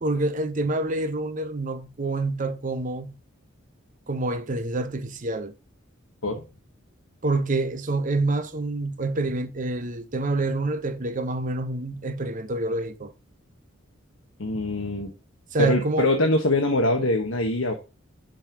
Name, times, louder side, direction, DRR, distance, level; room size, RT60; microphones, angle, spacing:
voice 1, 0.0-3.2 4.1-5.5 7.2-13.1 15.5-16.3, right 2 dB, 40° right, 0.8 m, -27 dB
voice 2, 14.4-15.1 15.6-17.7, left 2 dB, 80° left, 1.1 m, -23 dB
5.3 x 5.2 x 6.0 m
head